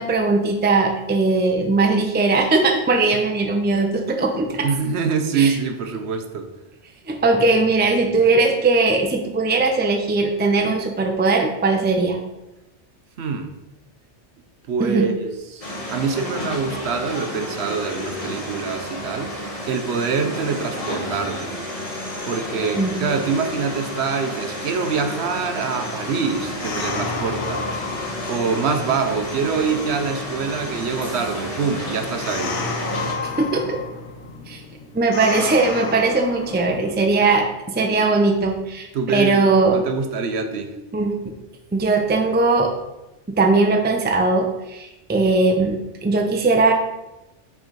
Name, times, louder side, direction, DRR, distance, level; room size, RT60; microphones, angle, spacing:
voice 1, 0.0-4.7 5.3-5.5 7.1-12.2 14.8-15.1 22.8-23.1 33.2-33.8 34.5-34.6 34.9-39.8 40.9-41.1 41.7-42.7 43.4-46.7, right 3 dB, 15° right, 2 dB, 0.4 m, -19 dB
voice 2, 4.6-6.5 13.2-13.5 14.7-15.6 15.9-19.3 19.7-21.5 22.2-27.8 28.3-32.6 38.9-40.7, right 5 dB, 70° right, 7 dB, 0.9 m, -25 dB
sound 1, 15.6-33.1, left 1 dB, 30° left, 1.3 m, -31 dB
sound 2, 26.2-37.4, left 4 dB, 80° left, 1.1 m, -32 dB
6.3 x 3.4 x 5.1 m, 0.99 s
omnidirectional pair, 1.2 m